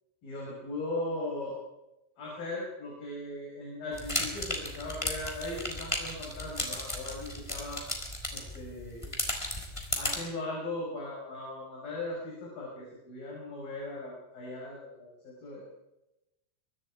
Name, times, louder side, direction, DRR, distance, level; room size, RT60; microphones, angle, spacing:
voice 1, 0.2-1.6 2.2-7.8 8.3-9.1 9.9-15.6, left 2 dB, 50° left, -4 dB, 7.3 m, -38 dB
sound 1, 3.9-10.2, left 1 dB, 5° left, 3.3 m, -35 dB
25.5 x 23.0 x 5.0 m, 0.94 s
omnidirectional pair, 5.3 m